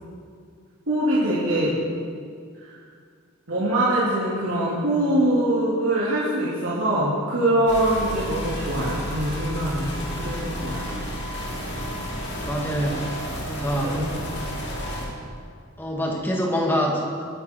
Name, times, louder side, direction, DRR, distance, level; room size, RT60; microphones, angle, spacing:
voice 1, 0.9-1.7 2.6-2.8 3.5-10.9 13.8-14.2, right 1 dB, 65° right, -8 dB, 2.9 m, -23 dB
sound 1, 7.7-15.1, equal, 55° left, 2.8 m, -31 dB
voice 2, 12.2-13.1 13.4-14.0 15.8-17.2, equal, 10° left, -2 dB, 2.2 m, -25 dB
22.0 x 9.6 x 4.6 m, 2.2 s
head